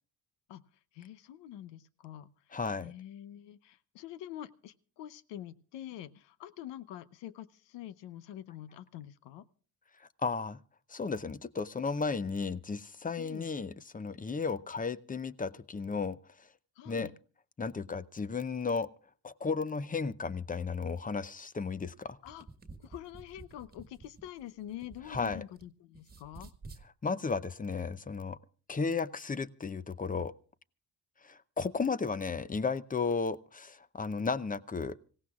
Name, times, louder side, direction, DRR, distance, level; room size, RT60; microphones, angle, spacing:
voice 1, 0.9-2.3 2.8-9.4 13.2-13.5 16.8-17.1 22.2-22.5 22.8-26.5, left 12 dB, 90° left, 16 dB, 0.8 m, -46 dB
voice 2, 2.5-2.9 10.2-10.6 10.9-16.2 16.9-17.1 17.6-18.9 19.2-22.2 25.1-25.4 27.0-28.4 28.7-30.3 31.2-35.0, left 4 dB, 20° left, 15 dB, 0.6 m, -34 dB
sound 1, 22.3-25.6 25.9-26.9, right 3 dB, 20° right, 1.6 m, -51 dB
26.0 x 16.5 x 2.4 m, 0.41 s
cardioid pair, 80°, 41 cm